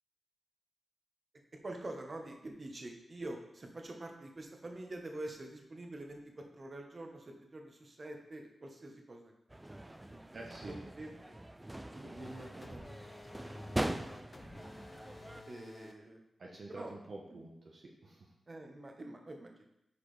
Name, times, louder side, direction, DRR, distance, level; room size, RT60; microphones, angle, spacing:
voice 1, 1.6-9.3 9.8-11.4 11.9-13.1 13.8-14.1 15.4-16.2 16.7-16.9 18.5-19.7, right 1 dB, 40° right, 2 dB, 1.3 m, -46 dB
sound 1, 9.5-15.4, right 1 dB, 15° right, 0.5 m, -42 dB
voice 2, 10.3-10.8 16.4-18.3, right 2 dB, 55° right, -2 dB, 1.1 m, -48 dB
sound 2, 12.2-15.9, left 2 dB, 40° left, 0.9 m, -51 dB
9.7 x 4.9 x 3.4 m, 0.79 s
cardioid pair, 65°, 0 cm